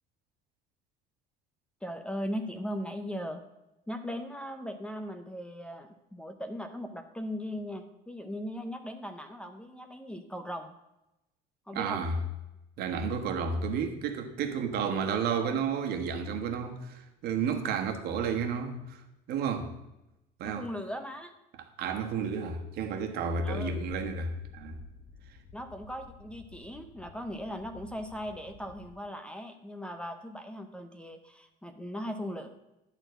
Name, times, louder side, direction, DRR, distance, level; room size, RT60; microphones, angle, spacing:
voice 1, 1.8-3.4 3.9-10.7 11.7-12.0 20.4-21.3 23.4-23.7 25.5-32.5, equal, 5° left, 0.7 m, -38 dB
voice 2, 11.7-12.2 12.8-19.0 19.3-19.7 20.4-20.7 21.8-24.8, right 5 dB, 60° right, 1.4 m, -31 dB
sound 1, 23.4-28.9, left 4 dB, 50° left, 4.0 m, -53 dB
11.0 x 4.1 x 7.9 m
cardioid pair, 135°, 18 cm